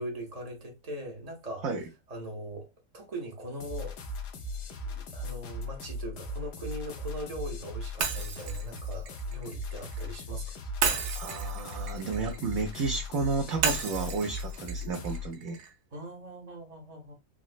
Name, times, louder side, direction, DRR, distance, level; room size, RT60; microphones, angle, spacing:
voice 1, 0.0-1.6 2.1-2.7 2.9-4.0 4.9-10.5 15.9-17.1, right 1 dB, 45° right, 0.5 m, -40 dB
sound 1, 3.6-15.3, left 1 dB, 75° left, 1.2 m, -38 dB
Shatter, 8.0-10.1 10.8-12.9 13.6-15.7, right 6 dB, 85° right, 1.3 m, -33 dB
voice 2, 11.2-15.6, right 4 dB, 70° right, 0.9 m, -32 dB
3.9 x 2.0 x 2.4 m
omnidirectional pair, 1.8 m